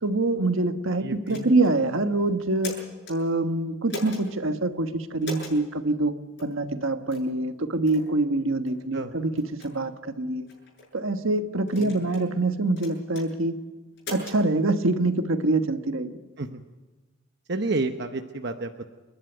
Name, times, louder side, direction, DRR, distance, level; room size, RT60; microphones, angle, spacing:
voice 1, 0.0-2.8 3.1-6.1 6.4-9.3 9.6-10.5 10.9-13.6 14.1-16.1, right 2 dB, 75° right, 7 dB, 1.4 m, -25 dB
voice 2, 1.0-1.5 8.9-9.1 11.8-12.0 16.4-16.6 17.5-18.9, right 2 dB, 55° right, 6 dB, 0.9 m, -30 dB
sound 1, 1.3-1.7 2.4-3.2 3.9-4.2 5.2-5.6 6.4-6.5 7.1-7.3 7.9-8.1 8.7-8.8 9.4-9.7 10.5-10.9 11.7-12.3 12.8-13.3 14.0-14.4, left 2 dB, 55° left, 7.9 m, -38 dB
29.0 x 11.5 x 9.3 m, 1.2 s
head